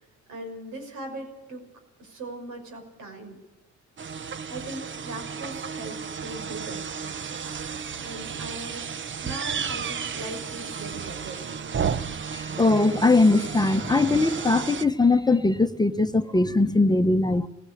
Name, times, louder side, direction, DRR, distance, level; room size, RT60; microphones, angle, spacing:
voice 1, 0.3-1.6 2.0-3.4 4.5-6.9 8.0-8.9 9.2-11.5, right 2 dB, 85° right, 3 dB, 6.3 m, -39 dB
sound 1, 4.0-14.8, right 6 dB, 40° right, 0.8 m, -33 dB
voice 2, 12.3-17.5, left 3 dB, 15° left, 8 dB, 1.0 m, -21 dB
19.5 x 17.0 x 8.6 m, 1.0 s
cardioid pair, 90°, 30 cm